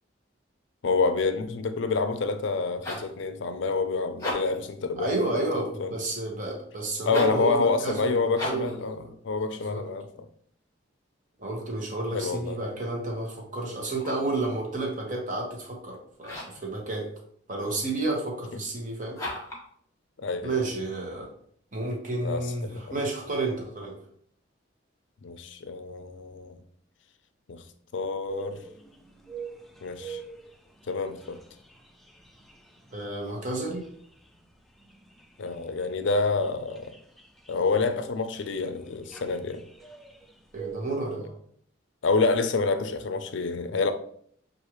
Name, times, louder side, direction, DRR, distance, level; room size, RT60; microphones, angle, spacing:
voice 1, 0.8-5.9 7.0-10.3 12.1-12.6 20.2-20.6 22.2-23.0 25.2-26.6 27.5-27.6 27.9-28.6 29.8-30.2 30.9-31.4 35.4-36.9 37.5-39.6 42.0-43.9, left 4 dB, 70° left, 0.4 m, -28 dB
sound 1, 2.5-3.2 4.1-4.7 7.0-7.5 8.3-8.8 13.8-14.4 16.2-16.7 19.1-19.7, left 1 dB, 15° left, 1.2 m, -35 dB
voice 2, 5.0-8.7 9.7-9.8 11.4-17.1 17.5-19.2 20.4-21.3 21.7-24.0 32.9-33.8 40.5-41.4, right 2 dB, 40° right, 1.1 m, -31 dB
sound 2, 28.3-41.1, right 6 dB, ahead, 0.4 m, -46 dB
6.4 x 2.5 x 3.0 m
head